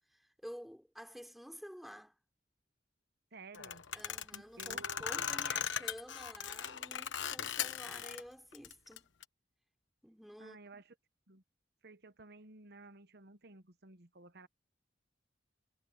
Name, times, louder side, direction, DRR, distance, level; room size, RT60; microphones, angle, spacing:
voice 1, 0.1-2.2 3.9-9.1 10.0-10.6, equal, ahead, 3.8 m, -51 dB
voice 2, 3.3-3.8 4.3-5.1 10.4-10.9 11.3-11.4 11.8-14.5, right 3 dB, 60° right, 1.2 m, -54 dB
sound 1, 3.5-8.2 8.5-9.2, left 8 dB, 85° left, 1.1 m, -38 dB
head